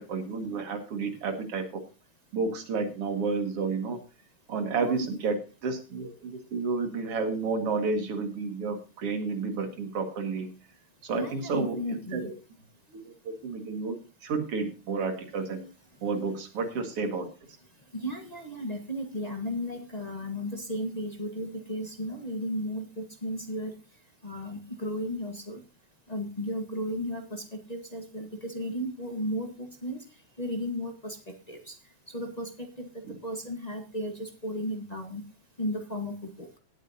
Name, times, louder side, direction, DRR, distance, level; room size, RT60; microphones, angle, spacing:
voice 1, 0.0-1.8 2.3-4.0 4.5-10.5 11.0-12.3 12.9-14.0 14.2-15.7 16.0-17.3 33.1-33.2, right 4 dB, 55° right, 6 dB, 2.8 m, -31 dB
voice 2, 4.8-5.2 11.1-12.3 17.9-23.7 24.2-25.6 26.1-30.0 30.4-31.2 31.5-31.8 32.1-32.9 33.2-35.2 35.6-36.5, equal, 30° left, 3 dB, 0.7 m, -34 dB
18.5 x 8.4 x 2.8 m, 0.31 s
omnidirectional pair, 3.3 m